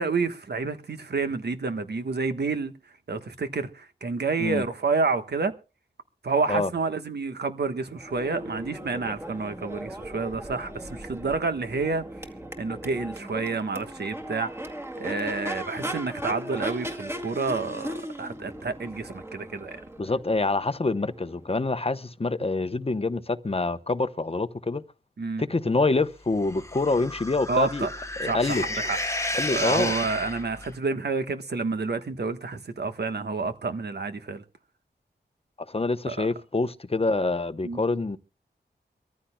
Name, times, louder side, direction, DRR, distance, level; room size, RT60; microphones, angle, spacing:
voice 1, 0.0-2.8 3.1-5.5 6.2-12.3 12.6-14.5 14.9-19.8 25.2-25.4 27.5-27.9 28.2-34.4 36.1-36.3 37.6-37.8, right 4 dB, 70° right, 1.3 m, -29 dB
Crowd / Race car auto racing / Accelerating revving vroom, 7.9-21.8, equal, 15° right, 2.1 m, -38 dB
voice 2, 20.0-24.8 25.4-27.9 28.2-28.6 29.3-29.9 35.7-38.2, left 3 dB, 35° left, 0.8 m, -26 dB
sound 1, 26.4-30.7, left 1 dB, 15° left, 1.1 m, -32 dB
25.0 x 14.5 x 2.2 m
wide cardioid pair, 75°, 18 cm